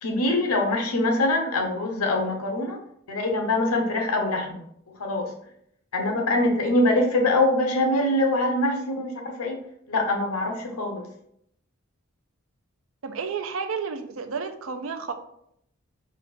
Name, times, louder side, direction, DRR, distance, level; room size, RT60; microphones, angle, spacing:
voice 1, 0.0-2.8 3.1-5.3 5.9-9.6 9.9-11.1, left 2 dB, 85° left, 3 dB, 0.8 m, -24 dB
voice 2, 13.0-15.1, right 5 dB, 65° right, 9 dB, 0.4 m, -31 dB
4.2 x 2.4 x 4.2 m, 0.72 s
head